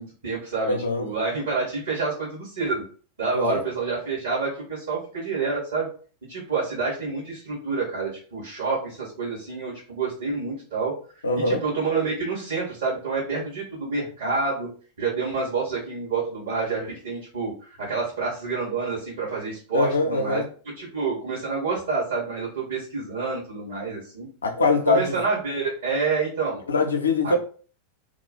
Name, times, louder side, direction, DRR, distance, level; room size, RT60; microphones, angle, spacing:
voice 1, 0.0-2.8 3.2-5.9 6.3-10.9 11.3-14.7 15.0-20.4 20.8-24.3 24.9-26.6 27.2-27.4, right 4 dB, 60° right, 1.5 m, -28 dB
voice 2, 0.6-1.0 3.3-3.6 11.2-11.6 19.7-20.4 24.4-25.2 26.7-27.4, left 3 dB, 70° left, 0.6 m, -22 dB
3.0 x 2.4 x 3.9 m
figure-of-eight pair, 90°, 0 cm